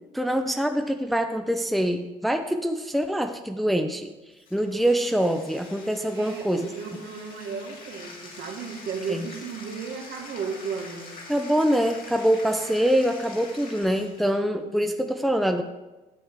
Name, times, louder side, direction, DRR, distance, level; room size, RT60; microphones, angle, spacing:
voice 1, 0.1-4.1 4.5-6.7 9.1-9.2 11.3-15.6, equal, ahead, 6 dB, 0.7 m, -24 dB
Bathtub (filling or washing), 4.4-14.4, left 3 dB, 50° left, 2.6 m, -45 dB
voice 2, 6.1-11.2, right 5 dB, 60° right, 2 dB, 2.0 m, -34 dB
11.5 x 7.1 x 4.8 m, 1.1 s
supercardioid pair, 85°, 19 cm